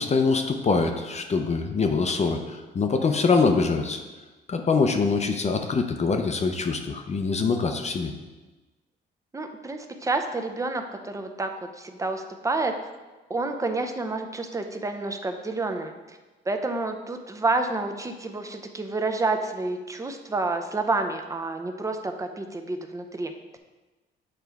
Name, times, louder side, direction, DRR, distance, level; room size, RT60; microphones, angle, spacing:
voice 1, 0.0-4.0 4.5-8.1, left 4 dB, 35° left, 5 dB, 0.6 m, -24 dB
voice 2, 9.3-12.7 13.3-16.2 16.5-23.6, right 3 dB, 15° right, 5 dB, 0.6 m, -29 dB
7.3 x 3.3 x 4.7 m, 1.2 s
cardioid pair, 90°, 20 cm